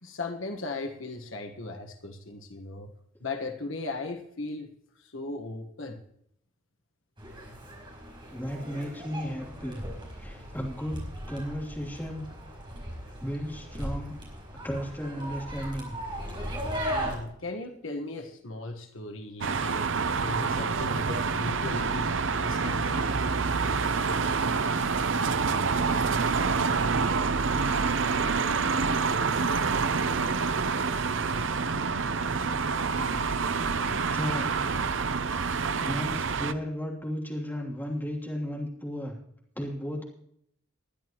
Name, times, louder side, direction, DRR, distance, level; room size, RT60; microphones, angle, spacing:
voice 1, 0.0-2.9 3.2-4.7 5.0-6.0 16.9-19.9 20.2-22.1 22.4-22.8, left 2 dB, 70° left, 5 dB, 1.4 m, -37 dB
sound 1, 7.2-17.2, equal, 25° right, 5.1 m, -37 dB
voice 2, 8.3-9.8 10.2-12.3 13.2-14.1 14.6-16.0 34.1-34.5 35.8-39.2 39.5-40.0, equal, 10° left, -3 dB, 3.0 m, -34 dB
sound 2, 19.4-36.5, right 4 dB, 65° right, 0.7 m, -27 dB
20.5 x 11.0 x 3.0 m, 0.70 s
head